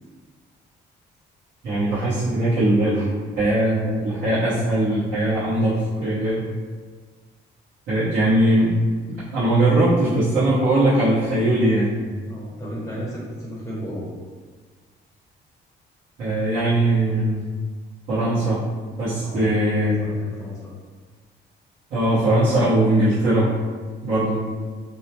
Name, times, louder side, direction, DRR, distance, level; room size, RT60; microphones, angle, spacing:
voice 1, 1.6-3.1 3.4-6.4 7.9-8.7 9.1-11.9 16.2-17.4 18.1-18.6 19.0-20.2 21.9-23.5 24.0-24.4, right 1 dB, 70° right, -14 dB, 1.2 m, -20 dB
voice 2, 12.2-14.0 19.2-19.5 19.8-20.7, equal, 15° left, -6 dB, 0.7 m, -34 dB
2.8 x 2.1 x 2.9 m, 1.5 s
cardioid pair, 90°, 20 cm